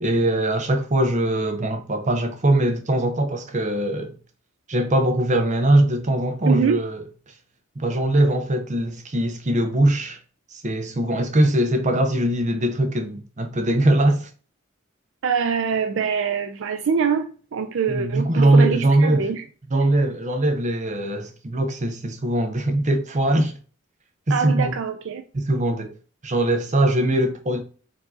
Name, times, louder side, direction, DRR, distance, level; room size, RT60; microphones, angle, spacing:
voice 1, 0.0-4.1 4.7-7.0 7.8-10.2 10.5-14.3 17.9-19.3 19.7-23.5 24.3-24.7 25.3-25.9 26.2-27.6, right 1 dB, 35° right, 0.8 m, -21 dB
voice 2, 6.5-6.8 15.2-19.4 24.3-25.2, right 6 dB, 65° right, 0.5 m, -24 dB
4.7 x 2.8 x 3.7 m
head